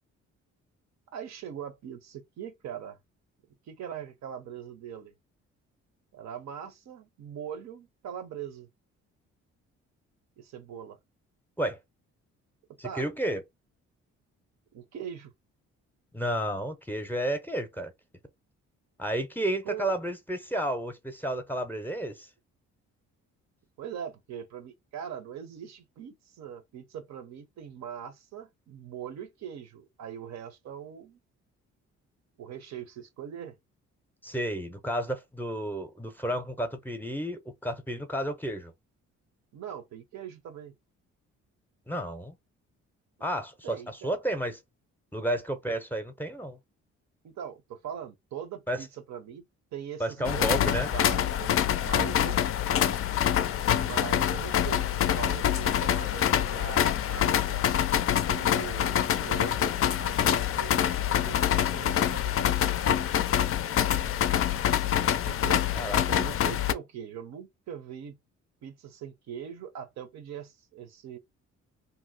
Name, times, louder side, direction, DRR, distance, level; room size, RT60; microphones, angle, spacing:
voice 1, 1.1-3.0 3.7-5.1 6.1-8.7 10.4-11.0 12.8-13.1 14.7-15.3 19.6-19.9 23.8-31.2 32.4-33.6 39.5-40.7 43.6-44.1 47.2-49.5 49.7-52.4 53.8-57.6 58.3-60.9 61.2-63.0 65.3-65.7 66.1-68.2 68.6-71.2, right 8 dB, 65° right, 0.7 m, -41 dB
voice 2, 12.8-13.4 16.1-17.9 19.0-22.3 34.2-38.7 41.9-42.4 43.2-44.6 45.1-46.6 48.7-48.8 50.0-50.9 65.7-66.0, right 1 dB, 5° left, 0.6 m, -31 dB
sound 1, 50.2-66.7, left 10 dB, 50° left, 0.4 m, -26 dB
2.7 x 2.0 x 3.9 m
cardioid pair, 90°, 30 cm